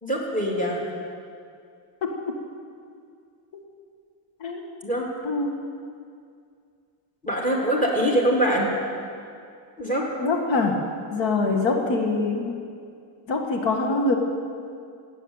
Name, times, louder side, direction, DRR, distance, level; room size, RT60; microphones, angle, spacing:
voice 1, 0.0-0.8 4.8-5.1 7.2-8.7 9.8-10.1, equal, 15° left, -1 dB, 3.2 m, -23 dB
voice 2, 2.0-2.4 3.5-3.6 4.4-4.6 5.2-5.6 9.9-10.8 11.1-12.6 13.3-14.2, left 3 dB, 85° left, 3 dB, 1.7 m, -24 dB
16.5 x 8.2 x 9.0 m, 2.3 s
cardioid pair, 120°, 44 cm